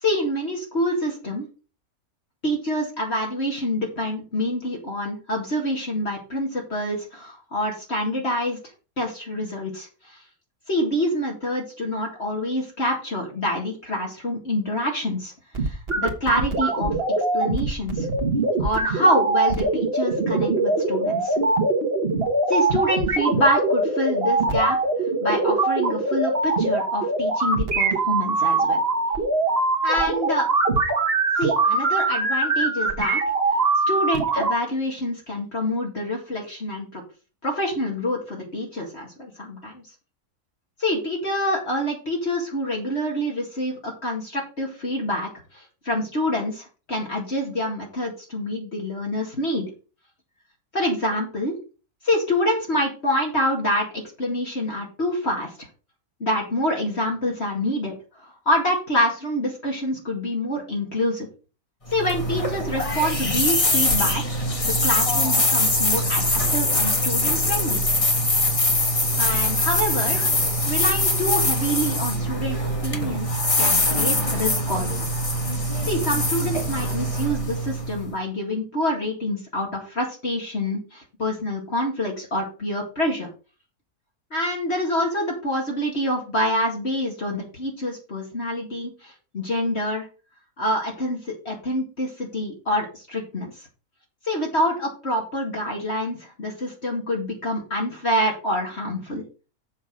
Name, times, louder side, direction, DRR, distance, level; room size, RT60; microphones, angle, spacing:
voice 1, 0.0-1.5 2.4-8.6 9.0-10.2 10.7-15.3 15.6-16.9 17.3-18.1 18.6-21.4 22.5-24.8 25.2-28.8 29.8-30.5 31.4-33.2 33.9-37.0 37.4-39.8 40.8-49.7 50.7-51.6 52.0-55.7 56.2-57.9 58.2-61.3 61.9-64.2 64.6-67.8 69.2-70.2 70.7-73.3 73.6-75.0 75.8-83.3 84.3-90.1 90.6-93.5 94.2-99.2, left 1 dB, 45° left, -1 dB, 2.4 m, -26 dB
sound 1, 15.5-34.5, right 3 dB, 40° right, 1.7 m, -22 dB
sound 2, 61.9-78.1, left 1 dB, 25° left, 1.4 m, -23 dB
7.3 x 6.0 x 6.1 m, 0.34 s
omnidirectional pair, 1.6 m